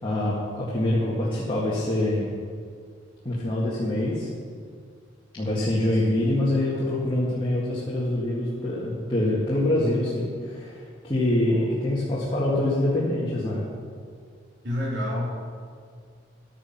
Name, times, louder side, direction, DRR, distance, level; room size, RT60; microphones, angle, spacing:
voice 1, 0.0-2.3 3.2-4.3 5.3-13.7, left 1 dB, 25° left, -7 dB, 1.9 m, -25 dB
voice 2, 14.6-15.3, left 1 dB, 65° right, -4 dB, 3.4 m, -30 dB
12.0 x 9.7 x 5.9 m, 2.1 s
head